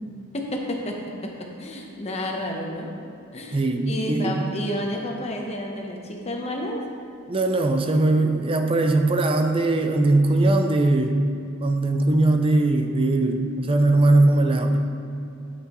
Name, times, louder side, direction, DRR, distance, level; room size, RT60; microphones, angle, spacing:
voice 1, 0.3-1.3 1.6-2.9 3.3-3.6 3.9-6.8, left 1 dB, 30° left, 0 dB, 0.9 m, -30 dB
voice 2, 3.5-4.4 7.3-11.2 11.6-14.8, right 2 dB, 25° right, 5 dB, 0.4 m, -20 dB
8.4 x 8.1 x 3.0 m, 2.5 s
head